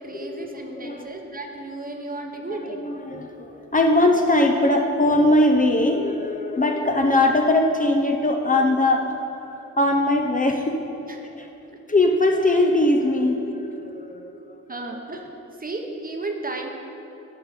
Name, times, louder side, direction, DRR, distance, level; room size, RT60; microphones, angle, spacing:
voice 1, 0.0-2.9 11.1-11.2 13.5-13.7 14.7-15.3 15.6-16.7, right 2 dB, 25° right, 3 dB, 0.9 m, -33 dB
voice 2, 2.7-3.5 3.7-9.0 9.8-10.7 11.4-11.5 11.9-14.3, left 1 dB, 25° left, 2 dB, 0.6 m, -20 dB
10.5 x 4.8 x 4.9 m, 3.0 s
cardioid pair, 80°, 31 cm